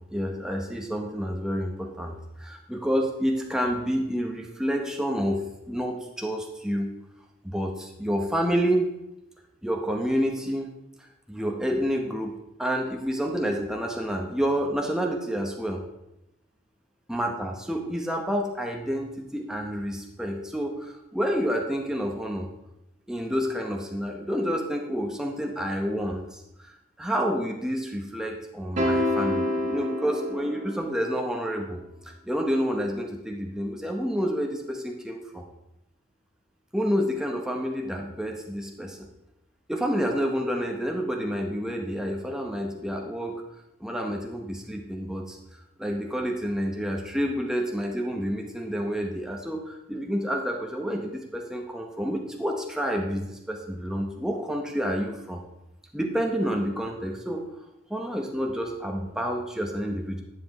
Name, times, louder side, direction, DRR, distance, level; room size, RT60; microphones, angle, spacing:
voice 1, 0.0-5.4 5.7-6.9 7.4-8.9 9.6-10.7 11.3-12.3 12.6-15.8 17.1-22.5 23.1-26.7 27.0-31.8 32.3-35.4 36.7-39.0 39.7-43.4 43.8-45.4 45.8-55.4 55.9-57.4 57.9-60.2, equal, 5° right, 1 dB, 0.8 m, -29 dB
sound 1, 28.8-31.2, left 1 dB, 40° right, 1.7 m, -27 dB
11.0 x 7.6 x 3.0 m, 0.89 s
head